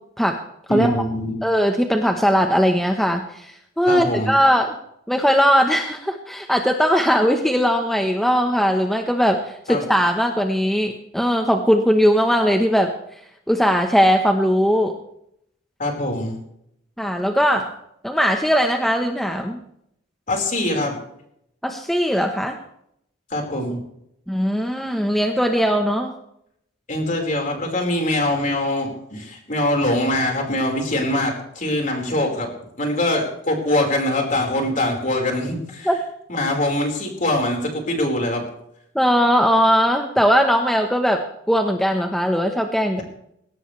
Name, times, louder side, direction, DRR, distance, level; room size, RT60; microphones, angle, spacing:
voice 1, 0.7-1.4 3.9-4.3 9.7-9.9 15.8-16.4 20.3-21.0 23.3-23.8 26.9-32.5 32.8-35.9 36.3-38.4, left 1 dB, 40° left, 1 dB, 4.7 m, -23 dB
voice 2, 1.4-4.7 5.1-12.9 13.5-14.9 17.0-17.7 18.0-19.6 21.6-22.6 24.3-26.1 35.8-36.0 38.9-43.0, equal, ahead, 4 dB, 1.1 m, -19 dB
20.5 x 17.5 x 3.3 m, 0.74 s
head